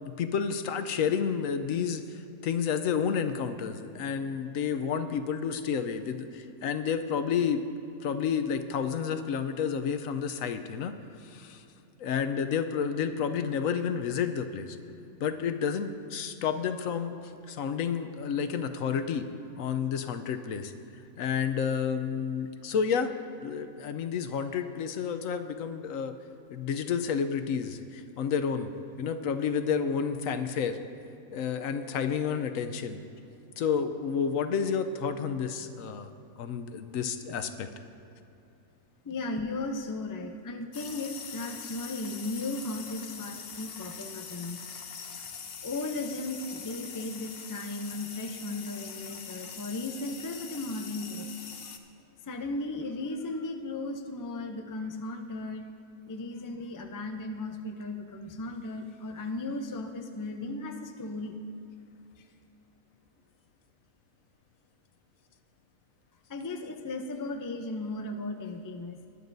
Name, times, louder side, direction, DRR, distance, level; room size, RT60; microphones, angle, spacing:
voice 1, 0.2-2.2 2.4-7.6 8.0-10.9 11.2-11.6 12.0-14.8 15.2-17.1 17.5-19.3 19.6-20.7 21.2-23.1 23.4-26.1 26.5-28.7 29.0-30.8 31.3-33.0 33.6-36.1 36.4-37.7, left 7 dB, 75° left, 9 dB, 1.1 m, -30 dB
voice 2, 39.0-44.6 45.2-45.3 45.6-51.3 52.3-55.7 56.1-61.4 66.3-69.0, left 2 dB, 30° left, 5 dB, 0.3 m, -36 dB
sound 1, 40.7-51.8, left 6 dB, 50° left, 0.8 m, -43 dB
19.5 x 11.0 x 2.7 m, 2.8 s
omnidirectional pair, 1.4 m